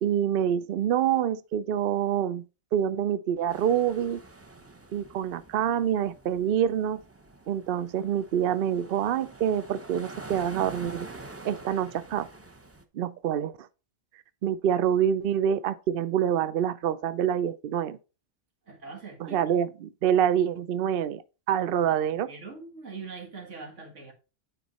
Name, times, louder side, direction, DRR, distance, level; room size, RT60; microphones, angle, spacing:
voice 1, 0.0-2.4 2.7-4.2 4.9-7.0 7.5-11.1 11.4-12.3 12.9-13.7 14.4-18.0 19.2-21.2 21.5-22.3, right 9 dB, 60° right, 0.6 m, -26 dB
sound 1, 3.5-12.8, right 2 dB, 15° right, 0.7 m, -46 dB
voice 2, 18.7-19.4 21.8-21.9 22.3-24.1, right 4 dB, 85° right, 2.0 m, -42 dB
9.1 x 4.6 x 4.1 m
omnidirectional pair, 1.2 m